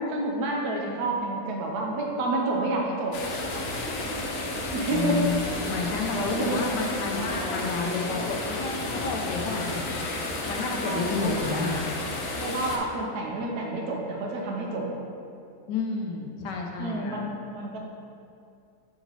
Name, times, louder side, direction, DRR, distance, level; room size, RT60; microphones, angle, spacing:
voice 1, 0.0-3.2 4.7-5.3 5.9-6.6 7.2-7.4 10.8-11.6 12.4-15.0 16.8-17.8, right 2 dB, 70° right, -1 dB, 1.3 m, -29 dB
sound 1, 3.1-12.8, left 2 dB, 60° left, 1.0 m, -32 dB
voice 2, 4.9-5.4 5.7-9.8 10.5-11.9 15.7-17.2, left 4 dB, 80° left, 1 dB, 1.3 m, -30 dB
8.0 x 3.0 x 4.0 m, 2.5 s
omnidirectional pair, 1.8 m